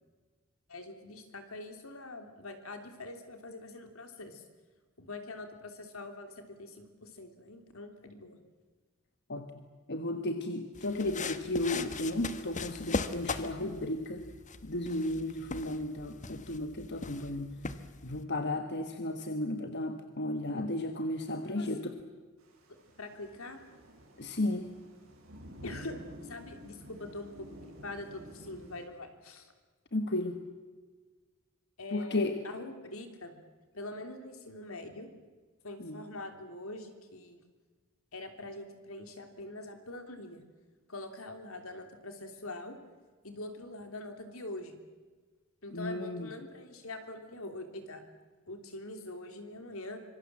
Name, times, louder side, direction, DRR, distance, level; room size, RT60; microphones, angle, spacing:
voice 1, 0.7-4.4 5.0-8.4 21.4-21.9 23.0-23.6 25.6-25.9 26.2-29.5 31.8-33.4 33.7-35.1 35.6-37.4 38.1-40.4 40.9-42.8 43.2-44.7 45.6-48.0 48.5-50.0, left 2 dB, 75° left, 6 dB, 3.1 m, -44 dB
voice 2, 9.3-9.6 9.9-14.3 14.6-17.5 18.0-21.9 24.2-24.7 29.9-30.4 31.9-32.4 35.8-36.0 45.7-46.3, left 1 dB, 55° left, 7 dB, 1.4 m, -34 dB
sound 1, 10.7-18.2, left 3 dB, 35° left, 1.2 m, -40 dB
Thunder / Rain, 22.4-28.9, equal, 75° right, 7.7 m, -51 dB
25.5 x 23.0 x 7.6 m, 1.4 s
head